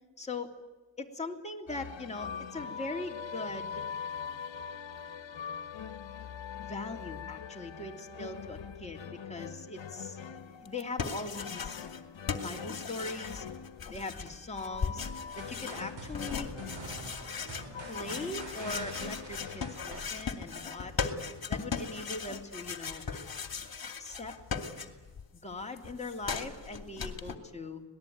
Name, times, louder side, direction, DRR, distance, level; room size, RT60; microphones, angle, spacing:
voice 1, 0.2-0.5 1.0-3.8 6.6-9.0 9.3-11.8 12.4-13.4 13.9-15.1 15.4-16.5 17.8-21.1 21.5-23.0 24.0-24.4 25.4-27.8, left 2 dB, 15° left, 1 dB, 3.0 m, -40 dB
sound 1, 1.7-19.7, left 7 dB, 70° left, 1.5 m, -43 dB
sound 2, 10.6-12.0 12.3-25.2 25.5-27.3, left 6 dB, 50° left, 2.6 m, -38 dB
sound 3, 15.4-20.6, right 2 dB, 70° right, 7.3 m, -46 dB
26.0 x 19.5 x 9.5 m, 1.2 s
cardioid pair, 90°, 46 cm